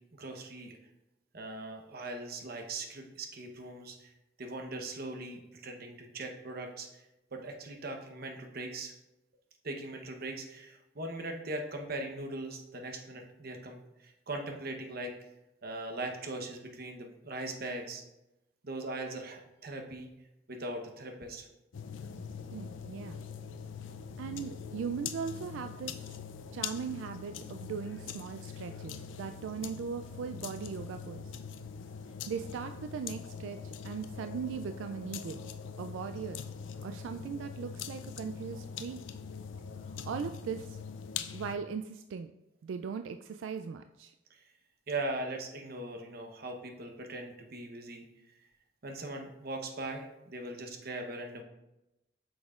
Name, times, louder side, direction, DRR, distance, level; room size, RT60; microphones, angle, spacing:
voice 1, 0.1-0.8 1.3-4.1 4.4-7.0 7.3-8.9 9.6-15.1 15.6-18.0 18.6-20.1 20.5-21.5 44.3-44.4 44.9-48.1 48.8-51.4, right 2 dB, 55° right, 4 dB, 0.9 m, -40 dB
sound 1, 21.7-41.5, left 7 dB, 90° left, 0.4 m, -43 dB
voice 2, 22.5-23.3 24.2-25.9 26.5-31.2 32.3-35.5 35.8-36.4 36.8-39.0 40.0-40.8 41.3-42.3 42.6-44.1, right 6 dB, 85° right, 8 dB, 0.3 m, -39 dB
8.5 x 6.2 x 2.4 m, 0.94 s
head